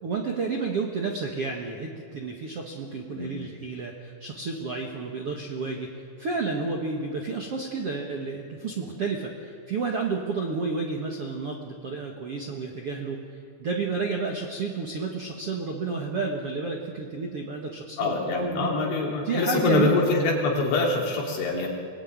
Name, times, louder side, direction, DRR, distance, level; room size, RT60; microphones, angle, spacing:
voice 1, 0.0-13.2 13.6-18.7 19.1-20.0, right 4 dB, 60° right, 1 dB, 1.5 m, -31 dB
voice 2, 18.0-21.7, left 3 dB, 85° left, -1 dB, 5.9 m, -24 dB
24.5 x 19.0 x 9.6 m, 2.3 s
omnidirectional pair, 5.2 m